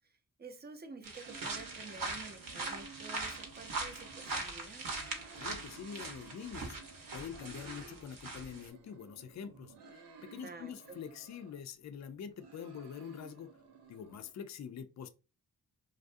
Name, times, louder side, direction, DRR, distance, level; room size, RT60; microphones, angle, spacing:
voice 1, 0.4-4.9 10.4-11.0, right 3 dB, 25° right, 0.5 m, -50 dB
sound 1, 1.0-8.7, right 3 dB, 55° right, 0.8 m, -41 dB
sound 2, 1.2-4.4 4.8-8.0 8.3-11.6 12.1-14.3, right 4 dB, 90° right, 0.6 m, -55 dB
voice 2, 5.4-13.5 13.9-15.1, left 7 dB, 45° left, 0.4 m, -45 dB
2.4 x 2.0 x 2.5 m
cardioid pair, 45°, 39 cm